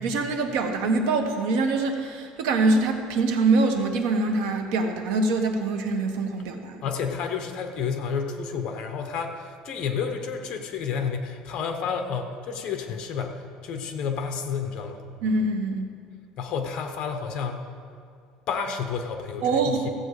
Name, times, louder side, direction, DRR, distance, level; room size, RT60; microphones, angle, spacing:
voice 1, 0.0-6.8 15.2-15.9 19.4-19.9, right 3 dB, 90° right, 4 dB, 1.4 m, -24 dB
voice 2, 6.8-15.0 16.4-17.7 18.5-19.9, left 6 dB, 40° left, 5 dB, 1.1 m, -30 dB
14.5 x 8.2 x 4.9 m, 2.3 s
cardioid pair, 175°, 2 cm